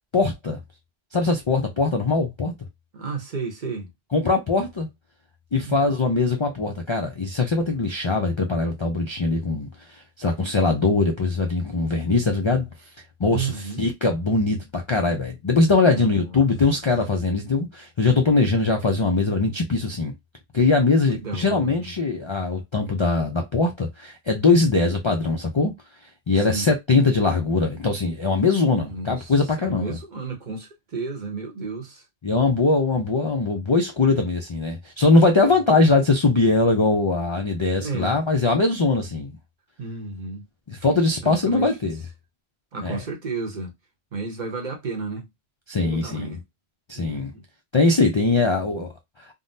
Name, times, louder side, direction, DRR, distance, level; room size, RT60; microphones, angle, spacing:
voice 1, 0.1-0.6 1.1-2.5 4.1-4.9 5.5-12.7 13.2-20.1 20.5-25.7 26.3-30.0 32.2-39.4 40.7-42.0 42.8-43.0 45.7-46.4 46.9-47.3 47.7-48.9, left 3 dB, 40° left, 0.4 m, -21 dB
voice 2, 2.9-3.9 5.6-5.8 13.3-13.9 15.8-16.3 21.1-21.9 24.5-24.7 26.3-26.7 28.6-32.0 37.7-38.2 39.8-40.4 41.2-41.9 42.7-43.7 44.1-45.3 45.8-46.4 46.9-47.4, right 4 dB, 50° right, 0.9 m, -32 dB
3.7 x 2.0 x 2.6 m
omnidirectional pair, 1.1 m